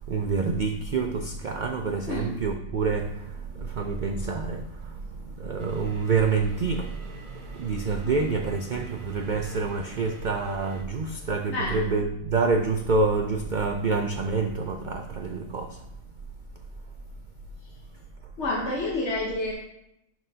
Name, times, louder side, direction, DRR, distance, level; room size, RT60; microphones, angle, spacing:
voice 1, 0.1-4.6 5.4-6.9 7.6-15.8, right 4 dB, 80° right, 4 dB, 0.4 m, -27 dB
sound 1, 5.6-10.8, right 4 dB, 40° right, 1.0 m, -46 dB
voice 2, 11.5-11.9 17.6-17.7 18.4-19.5, left 2 dB, 55° left, -2 dB, 1.3 m, -29 dB
11.0 x 6.2 x 2.8 m, 0.82 s
omnidirectional pair, 1.5 m